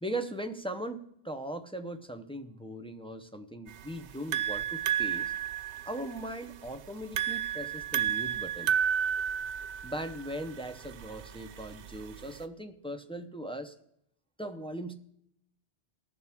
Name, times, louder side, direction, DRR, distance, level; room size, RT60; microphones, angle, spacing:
voice 1, 0.0-5.3 5.9-8.7 9.8-13.8 14.4-14.9, right 1 dB, 5° left, 6 dB, 0.5 m, -39 dB
sound 1, 3.7-12.4, right 9 dB, 85° right, 0.9 m, -32 dB
19.0 x 7.0 x 3.5 m, 0.75 s
omnidirectional pair, 1.1 m